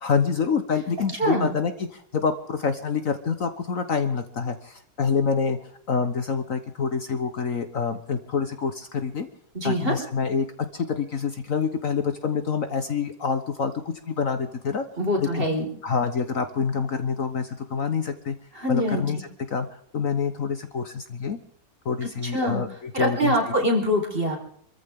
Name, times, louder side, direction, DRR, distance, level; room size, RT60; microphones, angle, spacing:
voice 1, 0.0-5.6 5.9-9.3 9.6-10.5 10.7-14.9 15.2-15.5 15.8-18.3 18.7-19.2 19.5-19.7 19.9-21.4 21.8-23.5, left 6 dB, 55° left, 9 dB, 1.4 m, -26 dB
voice 2, 9.5-10.0 15.0-15.6 18.5-19.0 22.3-22.6 22.9-24.4, equal, 30° right, 1 dB, 4.8 m, -24 dB
26.5 x 14.5 x 3.7 m, 0.63 s
omnidirectional pair, 1.8 m